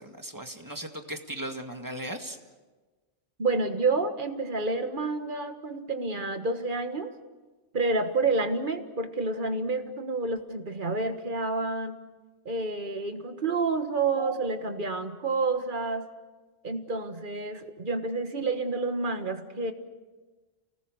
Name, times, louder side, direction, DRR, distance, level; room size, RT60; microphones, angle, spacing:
voice 1, 0.0-2.4, right 1 dB, 20° right, 4 dB, 1.8 m, -37 dB
voice 2, 3.4-7.1 7.7-12.0 12.5-16.1 16.6-19.7, right 3 dB, 50° right, 7 dB, 1.7 m, -29 dB
29.5 x 18.5 x 6.5 m, 1.3 s
omnidirectional pair, 1.1 m